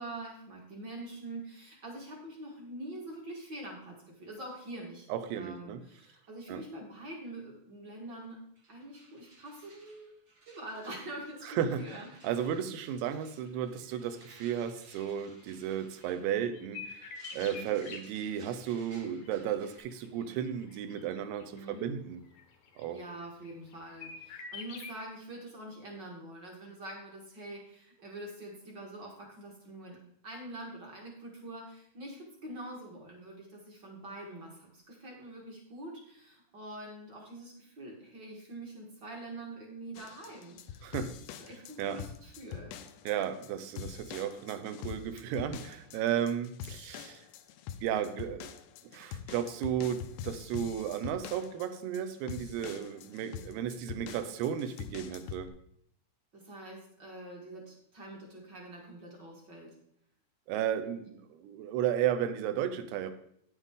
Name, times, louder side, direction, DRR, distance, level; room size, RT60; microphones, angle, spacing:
voice 1, 0.0-5.1 5.3-8.4 8.7-10.1 10.5-12.1 17.3-17.7 21.5-21.9 22.9-30.0 30.2-40.8 41.5-42.7 56.3-59.7, right 1 dB, 45° right, -1 dB, 1.4 m, -45 dB
voice 2, 5.1-5.8 6.5-6.6 11.4-22.2 22.8-23.0 40.8-41.2 41.8-42.0 43.1-47.2 47.8-48.5 48.9-55.5 60.5-63.1, right 9 dB, 80° right, 10 dB, 2.7 m, -34 dB
sound 1, 8.2-8.3 8.5-19.8, right 2 dB, 65° right, 0.9 m, -59 dB
sound 2, 13.3-13.5 13.8-14.0 14.3-15.4 16.0-18.0 18.7-21.8 22.3-23.7 24.0-25.0, left 6 dB, 75° left, 1.7 m, -47 dB
sound 3, 40.0-55.5, left 9 dB, 90° left, 2.7 m, -44 dB
9.8 x 8.1 x 3.6 m, 0.70 s
omnidirectional pair, 4.7 m